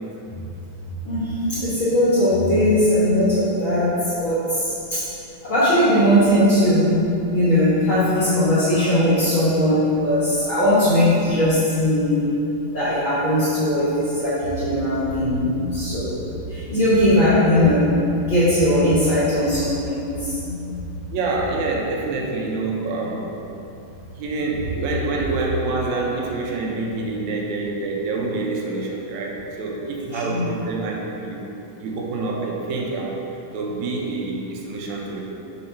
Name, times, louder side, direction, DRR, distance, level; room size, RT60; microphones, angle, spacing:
voice 1, 1.0-5.0 5.4-12.3 12.7-20.6 30.1-30.4, left 1 dB, 60° left, -11 dB, 1.3 m, -19 dB
voice 2, 21.1-23.3 24.2-31.5 31.8-33.3 33.5-35.2, right 3 dB, 75° right, -1 dB, 1.8 m, -26 dB
5.4 x 3.9 x 5.6 m, 2.9 s
omnidirectional pair, 4.0 m